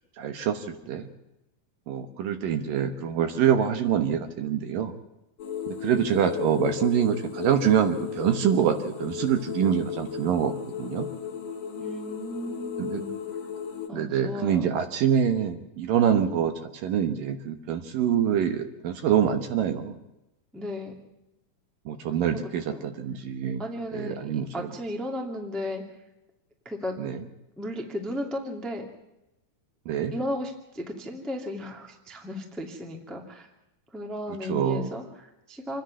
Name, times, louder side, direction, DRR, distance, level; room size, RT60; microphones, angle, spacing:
voice 1, 0.2-1.1 1.9-4.9 5.7-11.1 12.8-13.0 13.9-20.0 21.9-23.6 23.9-24.7 27.0-27.2 29.9-30.1 34.5-34.9, right 8 dB, 65° right, 7 dB, 2.6 m, -25 dB
sound 1, 5.4-13.9, left 8 dB, 50° left, 2.8 m, -35 dB
voice 2, 11.8-13.1 13.9-14.7 20.5-21.0 22.7-22.9 23.6-25.8 26.6-27.0 27.6-28.9 30.1-33.5 33.9-35.8, left 1 dB, ahead, 2 dB, 1.1 m, -35 dB
27.0 x 10.5 x 9.6 m, 0.93 s
omnidirectional pair, 4.6 m